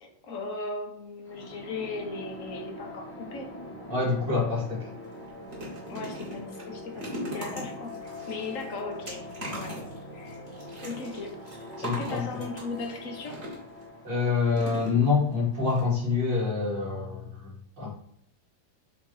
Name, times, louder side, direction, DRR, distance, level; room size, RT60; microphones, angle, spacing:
voice 1, 0.0-3.5 5.9-9.8 10.1-10.4 10.8-11.4 11.8-13.4, left 3 dB, 45° left, 3 dB, 1.4 m, -37 dB
sound 1, 1.2-16.0, left 1 dB, 5° left, 1.3 m, -43 dB
voice 2, 3.9-4.9 11.8-12.2 14.0-17.5 17.8-17.9, left 4 dB, 65° right, -7 dB, 3.7 m, -26 dB
sound 2, 4.7-4.8 5.0-13.8 14.5-15.3 15.7-15.8 16.1-16.2, equal, 35° right, 2.6 m, -40 dB
8.2 x 3.2 x 4.7 m, 0.69 s
omnidirectional pair, 2.1 m